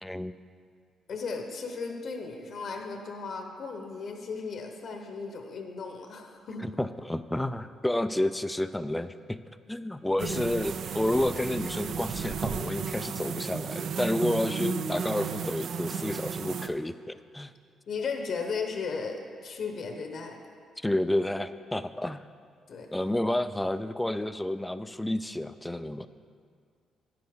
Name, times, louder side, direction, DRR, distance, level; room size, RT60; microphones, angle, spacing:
voice 1, 0.0-0.3 6.6-9.4 9.7-17.5 20.8-22.3 22.9-26.1, left 1 dB, 10° left, 12 dB, 0.3 m, -30 dB
voice 2, 1.1-6.6 10.2-10.7 17.9-19.2 19.4-20.4 22.7-22.9, left 5 dB, 60° left, 4 dB, 0.9 m, -36 dB
sound 1, 10.2-16.7, right 6 dB, 65° right, 0.4 m, -33 dB
9.2 x 7.8 x 3.6 m, 2.1 s
cardioid pair, 90°, 0 cm